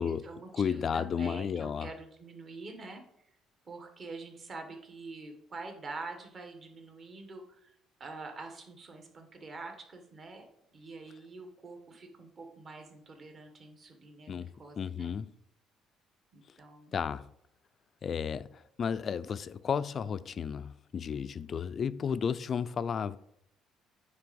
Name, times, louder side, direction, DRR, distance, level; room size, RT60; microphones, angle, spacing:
voice 1, 0.0-3.0 3.6-10.5 10.7-15.1 16.3-16.9, right 3 dB, 35° right, 1.4 m, -46 dB
voice 2, 0.5-1.9 14.3-14.5 14.8-15.3 16.9-17.3 18.0-23.2, left 7 dB, 40° left, 0.3 m, -33 dB
9.2 x 3.4 x 5.2 m
cardioid pair, 125°, 0 cm